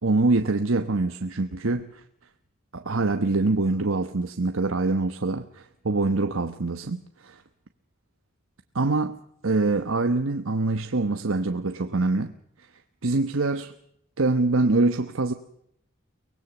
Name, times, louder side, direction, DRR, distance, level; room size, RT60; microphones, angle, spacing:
voice 1, 0.0-2.0 2.7-7.4 8.7-9.2 9.4-12.3 13.0-13.7 14.2-15.3, right 3 dB, 80° right, 1.1 m, -24 dB
24.0 x 19.5 x 7.2 m
head